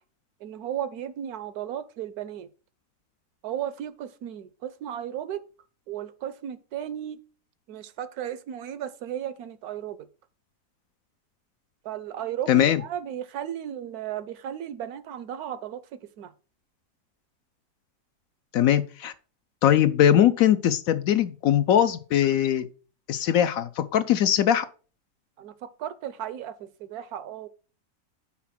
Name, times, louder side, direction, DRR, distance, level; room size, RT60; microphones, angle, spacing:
voice 1, 0.4-2.5 3.4-5.4 5.9-7.2 7.7-10.1 11.8-16.3 25.4-27.5, right 10 dB, 70° right, 1.1 m, -35 dB
voice 2, 12.5-12.8 18.5-19.1 19.6-22.7 23.1-24.6, left 10 dB, 70° left, 0.9 m, -21 dB
5.9 x 4.8 x 5.7 m
omnidirectional pair, 1.7 m